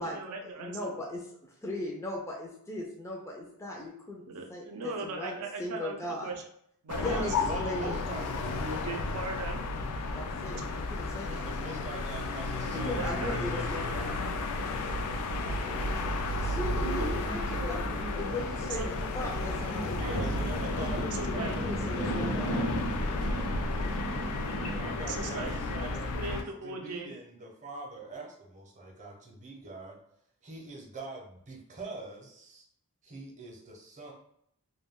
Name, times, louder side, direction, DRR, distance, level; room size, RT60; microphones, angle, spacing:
voice 1, 0.0-0.9 4.2-6.4 6.8-8.3 8.6-9.6 10.5-10.7 12.7-14.2 17.0-17.1 18.8-18.9 21.1-21.6 25.1-27.1, right 3 dB, 75° right, 3 dB, 0.5 m, -39 dB
voice 2, 0.6-4.2 4.5-6.3 6.9-7.3 7.6-8.0 10.1-10.6 10.9-11.6 12.8-14.1 16.4-20.1 20.8-22.5, left 1 dB, 15° left, -2 dB, 0.3 m, -38 dB
sound 1, 6.9-26.4, left 2 dB, 85° left, 0.4 m, -33 dB
voice 3, 7.0-8.7 11.3-14.2 20.0-23.8 24.7-30.0 30.4-32.6 33.0-34.1, right 2 dB, 35° right, -1 dB, 0.7 m, -44 dB
sound 2, 14.2-25.8, right 1 dB, 70° left, 0.8 m, -37 dB
2.3 x 2.2 x 3.5 m, 0.70 s
head